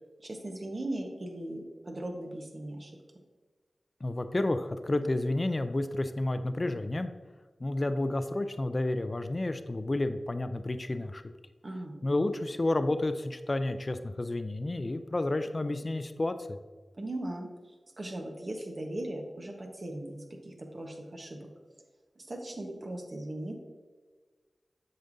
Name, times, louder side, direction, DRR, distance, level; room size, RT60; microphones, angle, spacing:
voice 1, 0.2-2.9 11.6-12.0 17.0-17.5 18.0-21.5 22.2-23.6, right 1 dB, 50° right, 2 dB, 1.1 m, -38 dB
voice 2, 4.0-7.1 7.6-11.2 12.0-16.6, left 2 dB, 40° left, 9 dB, 0.4 m, -30 dB
7.8 x 5.2 x 2.7 m, 1.4 s
cardioid pair, 45°, 0 cm